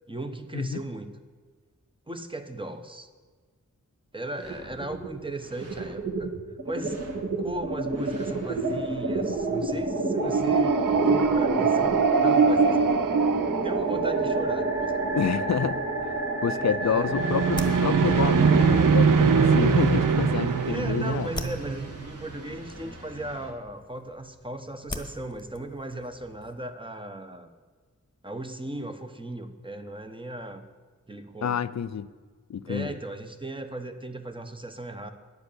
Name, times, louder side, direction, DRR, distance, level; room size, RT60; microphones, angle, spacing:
voice 1, 0.1-1.1 2.1-3.1 4.1-6.3 6.6-7.1 7.4-13.3 13.6-15.2 16.3-17.2 20.7-27.5 28.2-30.6 31.1-31.6 32.7-35.1, right 2 dB, 15° right, 7 dB, 0.9 m, -37 dB
sound 1, 4.4-5.2 5.5-23.5, right 3 dB, 50° right, 1.8 m, -30 dB
sound 2, 10.2-14.5 17.1-22.1, right 5 dB, 75° right, 0.7 m, -22 dB
voice 2, 15.1-16.1 16.4-21.3 31.4-32.1 32.5-33.0, left 8 dB, 60° left, 15 dB, 0.5 m, -28 dB
sound 3, 16.4-26.7, left 1 dB, 15° left, 1.2 m, -44 dB
10.5 x 8.2 x 6.7 m, 1.5 s
wide cardioid pair, 85°, 32 cm